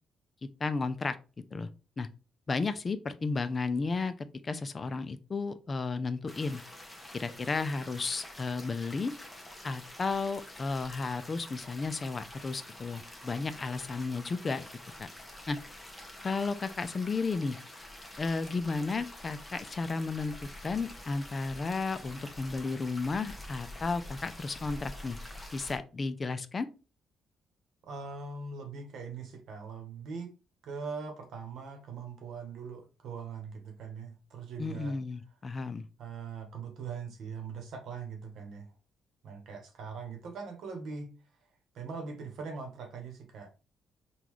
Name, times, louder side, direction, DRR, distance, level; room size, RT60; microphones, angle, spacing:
voice 1, 0.6-1.2 1.5-1.7 2.0-2.1 2.5-4.1 4.4-6.6 7.1-9.1 9.6-14.7 15.0-15.1 15.5-15.6 16.2-17.6 18.2-20.3 20.6-25.2 25.5-26.7 34.6-35.9, left 4 dB, 35° left, 0.3 m, -33 dB
sound 1, 6.3-25.8, left 1 dB, 10° left, 0.8 m, -47 dB
voice 2, 27.9-30.3 30.6-34.9 36.0-38.7 39.2-41.1 41.7-43.5, right 5 dB, 75° right, 1.0 m, -41 dB
3.7 x 2.3 x 3.0 m
cardioid pair, 90°, 0 cm